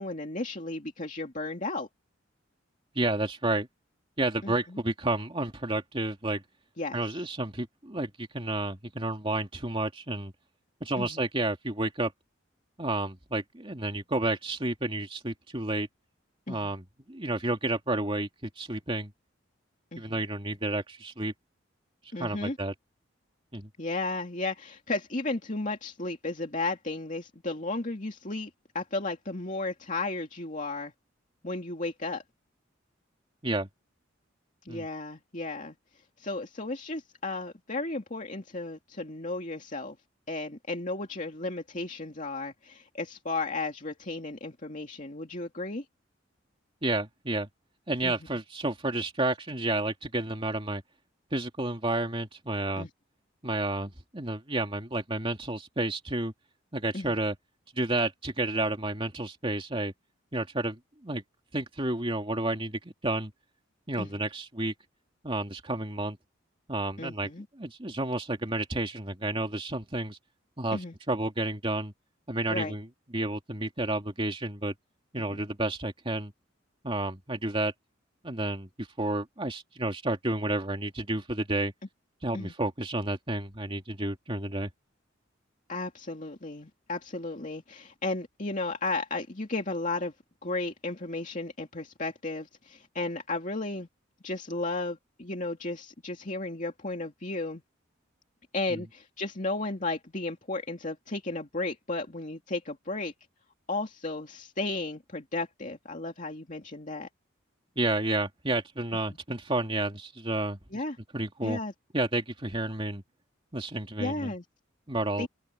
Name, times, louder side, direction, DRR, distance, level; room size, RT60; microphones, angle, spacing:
voice 1, 0.0-1.9 4.4-4.8 6.8-7.0 11.0-11.2 16.5-16.7 19.9-20.2 22.1-22.6 23.8-30.9 31.4-32.2 34.6-35.7 36.2-40.0 40.3-45.8 48.0-48.1 52.8-52.9 56.9-57.2 64.0-64.2 67.0-67.5 70.7-70.9 72.5-72.7 75.2-75.4 82.3-82.5 85.7-90.1 90.4-93.9 94.2-97.6 98.5-103.1 103.7-107.1 110.7-111.0 111.4-111.7 114.0-114.4 115.2-115.3, left 2 dB, 40° left, 2.6 m, -34 dB
voice 2, 2.9-3.7 4.2-6.4 6.9-10.3 10.8-12.1 12.8-15.9 16.5-18.3 18.6-19.1 20.0-21.3 22.2-22.7 23.5-23.7 33.4-33.7 34.7-34.9 46.8-47.5 47.9-50.8 51.3-52.9 53.4-56.3 56.7-57.4 57.8-59.9 60.3-61.2 61.5-63.3 63.9-64.7 65.2-66.2 66.7-67.3 67.6-70.2 70.6-70.8 71.1-71.9 72.3-72.9 73.1-74.7 75.1-76.3 76.8-77.7 78.2-81.7 82.2-84.7 98.7-98.8 107.8-110.6 111.1-111.6 111.9-113.0 113.5-114.3 114.9-115.3, right 2 dB, 25° right, 2.5 m, -31 dB
head